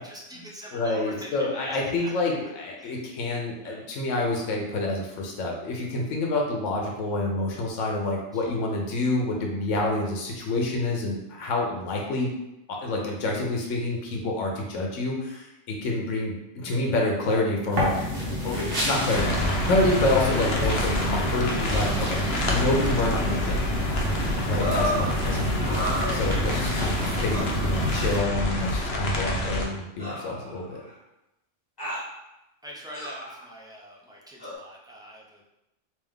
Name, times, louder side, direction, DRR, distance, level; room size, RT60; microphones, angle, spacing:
voice 1, 0.0-2.1 2.8-2.9 3.6-3.9 8.3-8.4 26.8-27.0 27.8-28.1 32.6-35.4, equal, 5° right, -4 dB, 0.4 m, -43 dB
voice 2, 0.7-12.3 12.7-18.0 18.4-19.3 19.6-23.6 24.5-26.9 27.2-30.8, left 2 dB, 85° left, 0 dB, 1.0 m, -28 dB
sound 1, 17.7-28.2, equal, 55° right, 1.2 m, -30 dB
sound 2, 19.1-29.7, left 1 dB, 60° left, 0.9 m, -27 dB
sound 3, 24.6-25.1 25.6-26.6 27.3-27.5 28.6-28.7 30.0-30.9 31.8-32.1 32.9-33.4 34.4-34.5, equal, 20° left, 1.4 m, -31 dB
3.4 x 2.9 x 3.5 m, 0.90 s
omnidirectional pair, 1.2 m